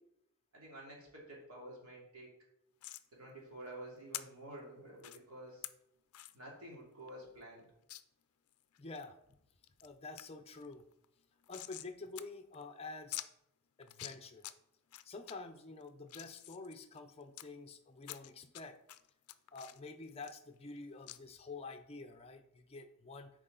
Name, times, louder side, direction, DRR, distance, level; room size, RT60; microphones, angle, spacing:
voice 1, 0.5-2.3 3.1-5.7 6.3-7.6, right 1 dB, 75° right, -3 dB, 2.7 m, -50 dB
sound 1, 2.8-3.1 4.1-4.2 5.0-5.2 5.6-5.7 6.1-6.4 6.7-6.8 7.1-7.2 7.9-8.0 8.5-9.1 9.5-9.9 10.2-10.3 10.5-11.9 12.2-12.3 12.5-12.6 13.1-13.3 13.8-14.5 14.9-15.3 15.8-17.4 18.0-18.6 18.9-20.8 21.1-21.2, left 15 dB, 75° left, 0.4 m, -46 dB
voice 2, 8.8-9.1 9.8-10.8 11.5-13.2 13.8-14.5 15.0-18.8 19.5-23.3, left 3 dB, 25° left, 7 dB, 0.6 m, -48 dB
8.0 x 4.9 x 3.9 m, 0.80 s
head